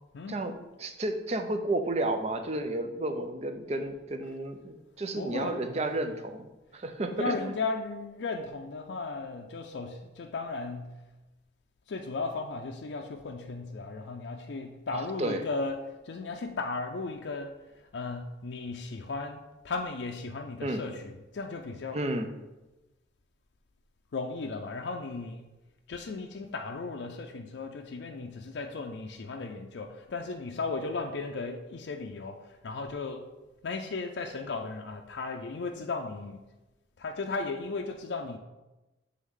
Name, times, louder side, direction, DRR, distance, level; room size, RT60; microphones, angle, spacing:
voice 1, 0.8-7.5 14.9-15.4 20.6-20.8 21.9-22.3, right 2 dB, 35° right, 7 dB, 0.5 m, -32 dB
voice 2, 5.1-6.0 7.1-11.0 11.9-17.5 17.9-22.0 24.1-25.5 25.9-33.3 33.6-36.4 37.0-38.4, left 3 dB, 70° left, 2 dB, 0.4 m, -36 dB
7.8 x 3.5 x 3.7 m, 1.0 s
head